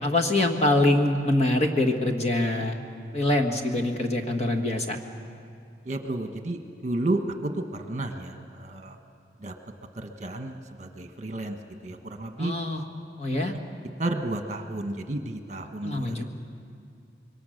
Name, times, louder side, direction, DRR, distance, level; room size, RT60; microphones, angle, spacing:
voice 1, 0.0-2.8 3.1-5.0 12.4-12.8 13.2-13.5 15.8-16.2, left 1 dB, 35° left, 2 dB, 1.7 m, -24 dB
voice 2, 5.8-9.0 9.4-9.5 9.9-12.5 14.0-16.2, right 2 dB, 40° right, 5 dB, 1.4 m, -32 dB
26.5 x 22.5 x 6.7 m, 2.5 s
head